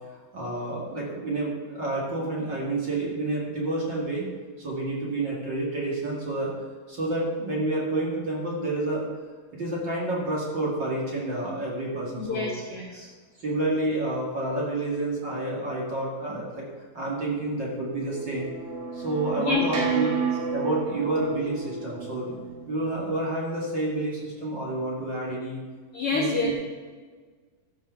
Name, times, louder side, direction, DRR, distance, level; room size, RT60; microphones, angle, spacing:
voice 1, 0.3-4.3 4.6-6.5 6.9-9.0 9.5-12.5 13.4-16.6 16.9-18.5 18.9-20.2 20.5-22.4 22.7-25.6 26.1-26.5, right 2 dB, 35° right, -4 dB, 2.3 m, -29 dB
voice 2, 12.2-13.1 19.4-19.9 25.9-26.5, left 4 dB, 60° left, -2 dB, 1.6 m, -28 dB
sound 1, 17.5-23.2, right 6 dB, 60° right, 3.1 m, -32 dB
13.5 x 5.3 x 7.1 m, 1.5 s
omnidirectional pair, 4.0 m